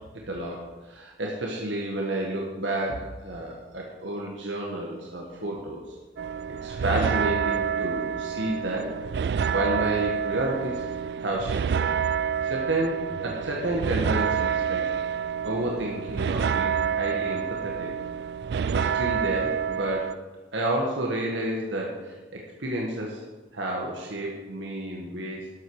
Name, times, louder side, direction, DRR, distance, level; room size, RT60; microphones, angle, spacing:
voice 1, 0.3-5.8 6.6-8.9 9.5-10.8 11.2-11.9 12.4-14.9 15.4-17.9 18.7-20.2 20.5-23.2 23.5-25.4, right 1 dB, 75° right, -2 dB, 1.6 m, -30 dB
sound 1, 6.2-20.1, right 7 dB, 60° right, 0.3 m, -28 dB
12.5 x 8.1 x 4.8 m, 1.2 s
head